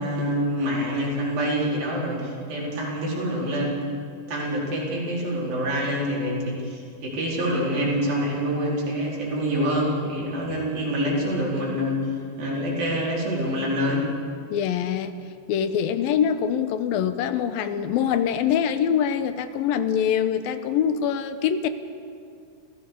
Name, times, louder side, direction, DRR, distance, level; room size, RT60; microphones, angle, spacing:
voice 1, 0.0-3.8 4.3-14.1, equal, 80° right, -5 dB, 6.3 m, -26 dB
voice 2, 14.5-15.1 15.5-21.7, left 8 dB, 90° left, 10 dB, 2.7 m, -24 dB
29.0 x 15.0 x 6.8 m, 2.4 s
omnidirectional pair, 4.1 m